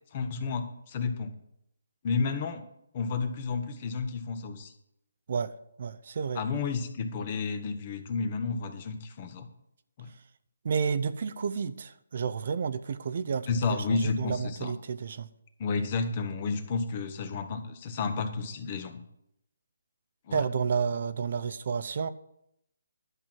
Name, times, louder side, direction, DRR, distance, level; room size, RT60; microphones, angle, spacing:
voice 1, 0.1-1.3 2.0-2.6 2.9-4.7 6.3-9.5 10.0-10.1 13.5-14.7 15.6-18.9 20.3-20.5, left 4 dB, 35° left, 8 dB, 1.3 m, -31 dB
voice 2, 5.8-6.4 10.6-15.3 20.3-22.1, right 6 dB, 55° right, 13 dB, 0.6 m, -31 dB
11.5 x 6.0 x 7.4 m, 0.78 s
figure-of-eight pair, 150°, 0 cm